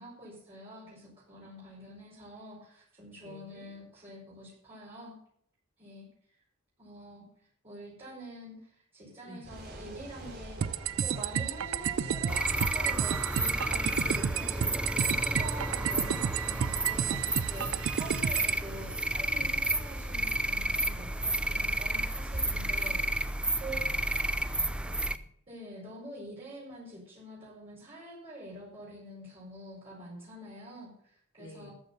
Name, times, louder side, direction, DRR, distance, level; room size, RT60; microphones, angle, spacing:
voice 1, 0.0-5.2 5.8-6.1 6.8-7.2 7.6-8.6 8.9-10.6 11.0-24.1 25.5-31.7, right 1 dB, 30° right, -8 dB, 5.2 m, -46 dB
voice 2, 3.2-3.7 9.2-9.5 23.6-24.1 24.4-25.3 31.4-31.7, left 1 dB, 70° left, 2 dB, 4.8 m, -52 dB
sound 1, 9.4-23.0, right 1 dB, 50° right, 4.3 m, -46 dB
sound 2, 10.6-18.6, right 8 dB, 70° right, 0.5 m, -31 dB
sound 3, 12.3-25.2, right 1 dB, 5° right, 0.5 m, -31 dB
13.5 x 9.8 x 5.4 m, 0.65 s
head